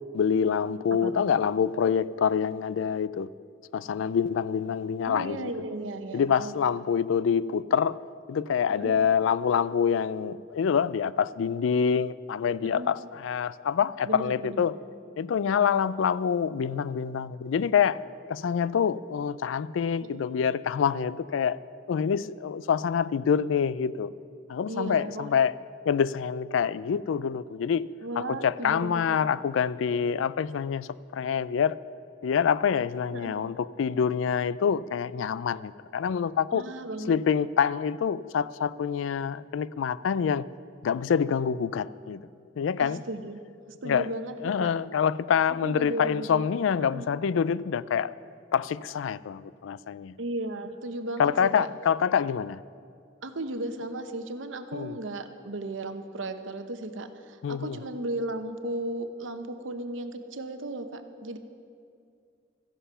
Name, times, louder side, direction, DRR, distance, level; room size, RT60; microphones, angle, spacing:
voice 1, 0.1-3.3 3.7-5.5 6.1-8.0 8.3-14.7 15.2-18.0 18.3-21.6 21.9-24.1 24.5-25.5 25.9-31.8 32.2-36.6 37.1-40.5 40.8-42.3 42.6-43.0 43.8-44.1 44.4-48.1 48.5-50.1 51.2-52.6 54.7-55.0 57.4-57.8, left 7 dB, 85° left, 0.4 m, -26 dB
voice 2, 5.1-6.7 8.8-9.0 12.6-12.9 14.1-14.8 20.0-20.2 24.7-25.3 28.0-29.2 33.1-33.4 36.5-37.2 42.8-43.4 43.7-44.7 45.6-46.5 46.9-47.1 50.2-51.7 53.2-61.4, right 1 dB, 85° right, 0.9 m, -35 dB
14.5 x 11.0 x 5.6 m
head